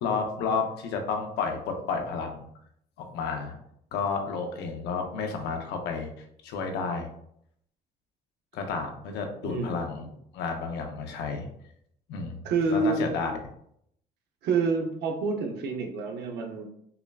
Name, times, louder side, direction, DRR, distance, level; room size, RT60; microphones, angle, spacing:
voice 1, 0.0-2.4 3.0-3.5 3.9-6.1 6.4-7.1 8.5-11.5 12.1-12.4 12.7-13.3, left 5 dB, 85° left, 4 dB, 0.7 m, -31 dB
voice 2, 9.4-9.8 12.4-13.0 14.4-16.7, right 4 dB, 80° right, 3 dB, 0.8 m, -27 dB
5.6 x 2.2 x 2.3 m, 0.70 s
cardioid pair, 110°, 17 cm